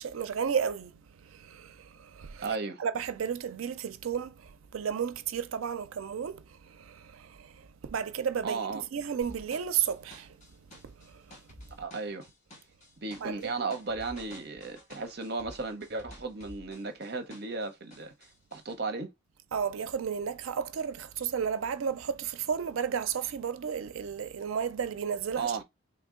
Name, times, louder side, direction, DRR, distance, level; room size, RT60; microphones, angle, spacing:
voice 1, 0.0-10.4 10.8-11.4 13.2-13.5 19.5-25.6, right 7 dB, 85° right, 0.4 m, -33 dB
voice 2, 2.4-2.8 8.4-8.8 11.8-12.3 13.0-18.1 18.5-19.1 25.4-25.6, right 4 dB, 50° right, 0.7 m, -35 dB
sound 1, 9.2-17.6 17.9-18.7, equal, 35° left, 1.4 m, -51 dB
3.2 x 2.6 x 3.7 m
head